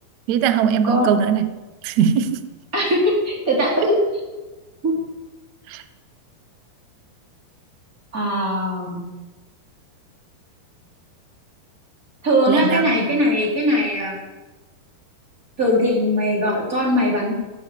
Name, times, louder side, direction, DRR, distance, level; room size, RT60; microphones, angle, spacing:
voice 1, 0.3-1.5 1.8-2.4 5.7-5.8 12.5-12.8, right 8 dB, 90° right, 10 dB, 1.5 m, -19 dB
voice 2, 2.7-4.0 4.8-4.9 8.1-9.0 12.2-14.2 15.6-17.3, equal, 20° right, -2 dB, 3.9 m, -20 dB
17.0 x 10.5 x 7.5 m, 1.2 s
omnidirectional pair, 4.7 m